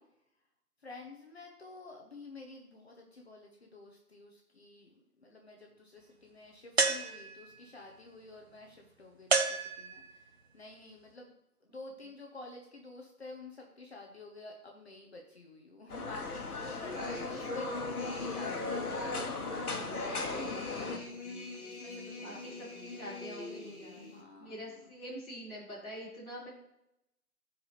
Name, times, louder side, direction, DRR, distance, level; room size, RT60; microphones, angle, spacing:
voice 1, 0.8-11.3 11.6-19.2 19.7-20.4 21.6-23.1 24.1-24.9, left 2 dB, 45° left, 1 dB, 1.0 m, -50 dB
sound 1, 6.8-7.6 9.3-10.3, right 4 dB, 45° right, 0.6 m, -30 dB
sound 2, 15.9-21.0, left 4 dB, 70° left, 1.5 m, -38 dB
sound 3, 16.3-24.2, left 2 dB, 15° left, 2.0 m, -42 dB
voice 2, 22.2-24.0 24.4-26.5, equal, ahead, -15 dB, 1.9 m, -45 dB
13.5 x 4.8 x 3.2 m, 0.83 s
hypercardioid pair, 170°, 46 cm